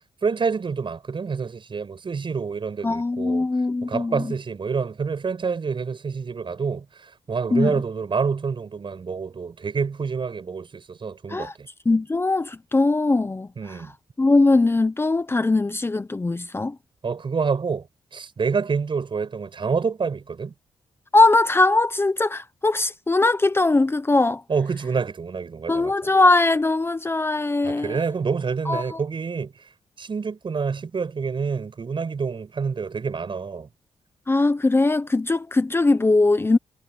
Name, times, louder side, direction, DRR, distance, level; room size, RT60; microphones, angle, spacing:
voice 1, 0.2-3.5 3.8-11.7 13.6-13.9 17.0-17.9 18.1-20.5 24.5-25.9 27.6-29.5 30.0-33.7, right 5 dB, 45° right, 7.2 m, -27 dB
voice 2, 2.8-4.3 7.5-7.7 11.3-11.5 11.9-13.8 14.2-16.8 21.1-24.4 25.7-28.0 28.7-29.0 34.3-36.6, left 2 dB, 20° left, 0.8 m, -20 dB
cardioid pair, 85°, 11 cm